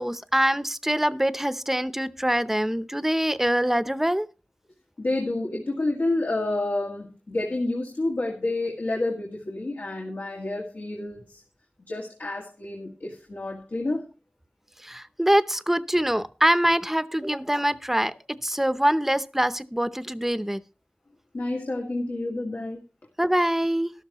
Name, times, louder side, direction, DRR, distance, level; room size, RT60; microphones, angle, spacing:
voice 1, 0.0-4.3 14.8-18.1 18.4-20.6 23.2-23.9, right 1 dB, 10° right, 13 dB, 0.7 m, -24 dB
voice 2, 5.0-11.4 11.9-14.1 21.3-22.8, left 2 dB, 80° left, -1 dB, 2.1 m, -29 dB
13.0 x 12.5 x 3.0 m, 0.34 s
wide cardioid pair, 70°, 3 cm